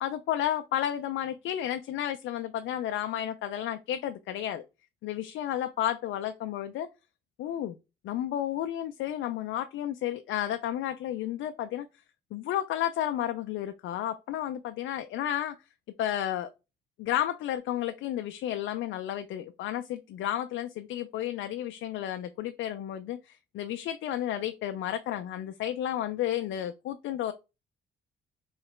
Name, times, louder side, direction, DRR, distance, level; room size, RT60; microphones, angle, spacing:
voice 1, 0.0-4.6 5.0-6.9 7.4-7.7 8.0-11.9 12.3-15.5 16.0-16.5 17.0-27.3, left 11 dB, 75° left, 0.4 m, -32 dB
3.2 x 2.8 x 4.3 m
cardioid pair, 90°, 20 cm